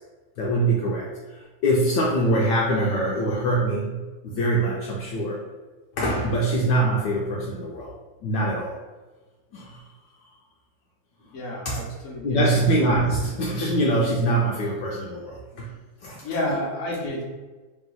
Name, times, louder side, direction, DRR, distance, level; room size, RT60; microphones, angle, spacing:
voice 1, 0.4-1.1 1.6-5.4 6.0-7.9 8.2-8.8 9.5-9.8 11.6-11.8 12.2-15.7 16.0-16.2, right 1 dB, 75° left, -3 dB, 1.2 m, -23 dB
voice 2, 11.3-12.4 16.2-17.2, left 1 dB, 50° left, -2 dB, 1.1 m, -30 dB
3.3 x 3.0 x 3.8 m, 1.3 s
omnidirectional pair, 2.2 m